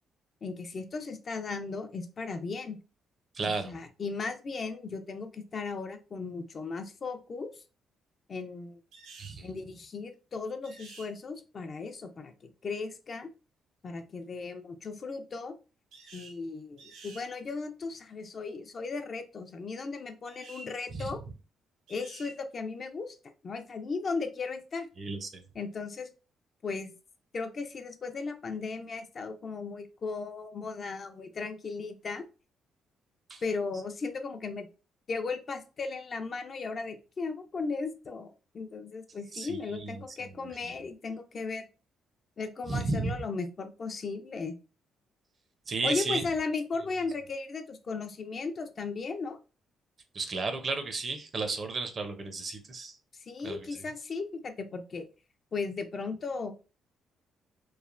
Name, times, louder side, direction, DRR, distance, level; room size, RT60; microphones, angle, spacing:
voice 1, 0.4-2.8 3.6-7.6 8.3-8.8 9.4-12.3 12.6-13.3 13.8-15.5 16.1-21.2 21.9-23.2 23.4-24.9 25.5-26.1 26.6-26.9 27.3-32.2 33.4-34.7 35.1-41.7 42.4-44.5 45.8-49.4 53.1-55.0 55.5-56.5, left 4 dB, 45° left, 7 dB, 0.4 m, -36 dB
voice 2, 3.3-3.7 9.2-9.5 20.9-21.1 25.0-25.4 33.3-33.4 39.3-40.0 42.7-43.2 45.7-46.2 50.1-53.0 53.4-53.7, right 3 dB, 45° right, 7 dB, 0.5 m, -33 dB
sound 1, 8.9-9.4 10.6-11.1 15.9-16.4 16.8-17.3 20.2-20.7 21.9-22.4, right 3 dB, 85° right, 0.7 m, -50 dB
3.1 x 2.1 x 2.4 m, 0.33 s
cardioid pair, 90°, 0 cm